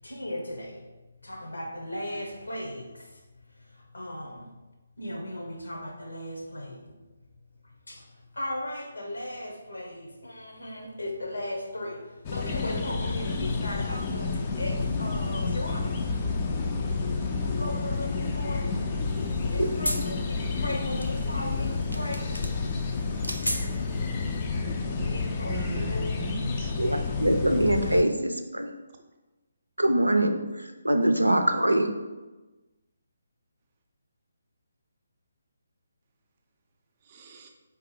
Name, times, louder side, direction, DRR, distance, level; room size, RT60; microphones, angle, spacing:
voice 1, 0.0-0.8 1.2-3.2 3.5-4.5 5.0-7.0 7.9-16.0 17.4-18.8 19.5-22.3 24.8-26.1, left 1 dB, 70° left, 1 dB, 1.0 m, -37 dB
sound 1, 12.2-28.0, left 4 dB, 25° left, 0.4 m, -30 dB
sound 2, 19.0-24.5, equal, 90° left, 0.5 m, -37 dB
voice 2, 21.5-22.2 24.6-25.1 25.5-26.7 37.0-37.5, right 3 dB, 30° right, 4 dB, 0.5 m, -40 dB
voice 3, 26.8-28.7 29.8-31.9, right 1 dB, 85° right, 6 dB, 0.5 m, -24 dB
4.3 x 3.0 x 3.8 m, 1.2 s
figure-of-eight pair, 145°, 0 cm